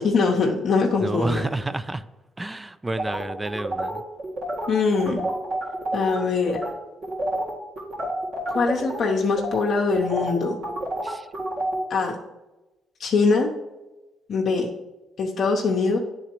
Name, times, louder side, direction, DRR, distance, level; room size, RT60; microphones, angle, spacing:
voice 1, 0.0-1.5 4.7-5.2 5.9-6.6 8.5-10.6 11.9-12.2 13.0-13.5 14.3-14.7 15.2-16.0, left 4 dB, 60° left, 0 dB, 0.7 m, -22 dB
voice 2, 1.0-2.1 2.4-4.0 11.0-11.3, right 2 dB, 15° right, 13 dB, 0.3 m, -29 dB
sound 1, 3.0-6.2 6.5-6.7 7.0-11.8, right 1 dB, 80° right, 2.1 m, -29 dB
9.8 x 3.9 x 3.0 m, 1.1 s
cardioid pair, 90°, 0 cm